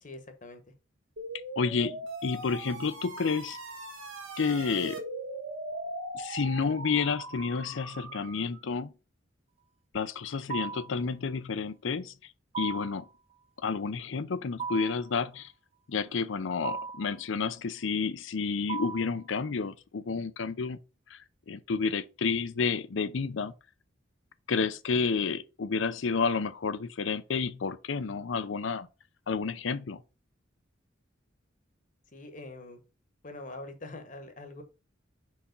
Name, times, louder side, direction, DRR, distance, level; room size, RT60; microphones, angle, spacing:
voice 1, 0.0-0.6 32.1-32.8 33.2-34.6, left 2 dB, 40° left, 1.1 m, -44 dB
sound 1, 1.2-8.6, right 1 dB, 85° right, 1.5 m, -40 dB
voice 2, 1.6-3.6 4.4-5.0 6.1-8.9 9.9-12.1 12.6-13.1 13.6-15.5 15.9-20.8 21.1-21.2 21.5-23.5 24.5-28.9 29.3-30.0, left 5 dB, 70° left, 0.5 m, -30 dB
sound 2, 10.5-11.0 12.5-13.0 14.6-15.1 16.6-17.1 18.7-19.2, right 5 dB, 30° right, 0.5 m, -36 dB
4.7 x 4.2 x 5.2 m
head